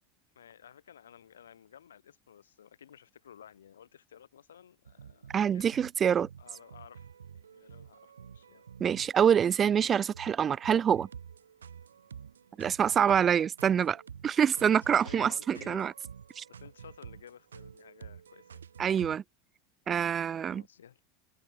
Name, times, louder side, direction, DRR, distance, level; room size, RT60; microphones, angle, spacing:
voice 1, 0.3-5.7 6.4-7.1 7.3-8.6 14.5-15.9 16.5-18.6 20.5-21.0, left 9 dB, 80° left, 4.6 m, -54 dB
sound 1, 4.9-19.2, right 7 dB, 85° right, 3.6 m, -50 dB
voice 2, 5.3-6.3 8.8-11.1 12.6-15.9 16.4-16.5 18.8-19.2 19.9-20.6, right 8 dB, 30° right, 0.4 m, -26 dB
hypercardioid pair, 90°, 0 cm